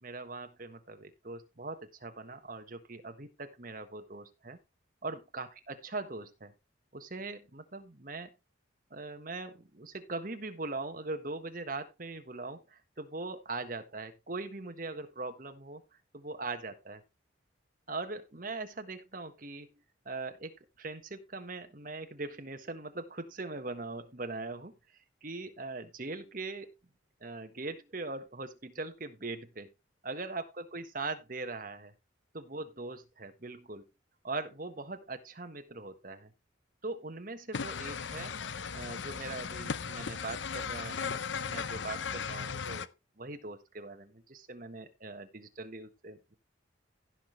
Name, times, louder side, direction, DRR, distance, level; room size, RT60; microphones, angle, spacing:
voice 1, 0.0-4.6 5.0-6.5 6.9-8.3 8.9-15.8 16.1-17.0 17.9-19.7 20.0-24.7 25.2-26.7 27.2-29.7 30.0-31.9 32.3-33.9 34.2-36.3 36.8-38.3 38.7-42.9 43.2-46.4, right 3 dB, 45° right, 7 dB, 1.4 m, -41 dB
sound 1, 37.5-42.9, left 6 dB, 70° left, 0.6 m, -37 dB
16.0 x 6.0 x 3.3 m, 0.24 s
head